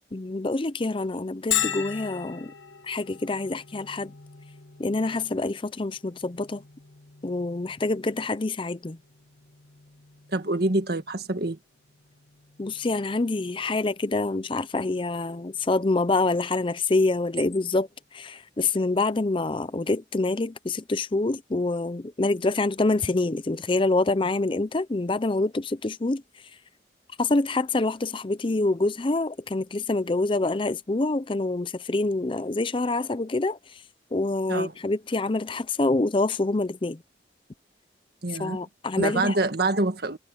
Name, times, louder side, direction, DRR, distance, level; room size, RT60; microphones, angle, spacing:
voice 1, 0.1-2.5 2.8-4.1 4.8-6.6 7.2-9.0 12.6-26.2 27.2-33.6 34.1-37.0 38.4-39.3, left 2 dB, 30° left, 0.6 m, -26 dB
Bell, 1.5-16.9, left 10 dB, 80° left, 1.6 m, -39 dB
voice 2, 10.3-11.6 34.5-34.7 38.2-38.6 39.0-40.2, right 2 dB, 60° right, 1.7 m, -26 dB
head